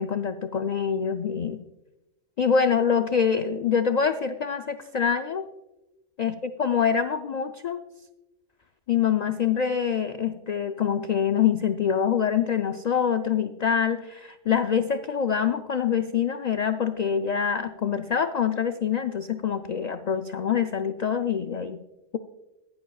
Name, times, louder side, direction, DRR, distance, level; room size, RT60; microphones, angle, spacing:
voice 1, 0.0-1.6 2.4-5.4 6.2-7.8 8.9-21.8, left 7 dB, 65° left, 9 dB, 0.4 m, -25 dB
15.0 x 11.0 x 2.3 m, 0.98 s
omnidirectional pair, 1.3 m